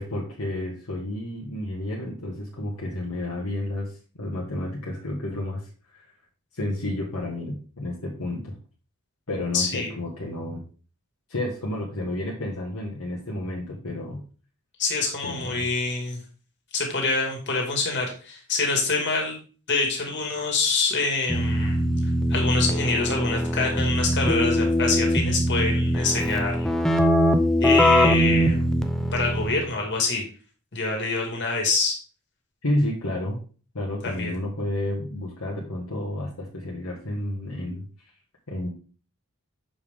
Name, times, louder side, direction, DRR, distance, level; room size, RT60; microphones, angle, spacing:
voice 1, 0.0-6.1 6.5-8.5 9.3-10.6 11.3-14.2 15.2-15.6 32.6-33.4 33.7-37.8 38.5-38.7, left 1 dB, 75° left, -3 dB, 1.5 m, -31 dB
voice 2, 9.5-9.9 14.8-16.2 16.7-19.4 19.7-21.8 22.3-26.7 27.6-28.6 29.1-30.2 30.7-31.9 34.0-34.3, left 3 dB, 55° left, 1 dB, 2.2 m, -26 dB
Keyboard (musical), 21.3-29.7, equal, ahead, 0.5 m, -22 dB
7.0 x 5.2 x 3.6 m, 0.39 s
head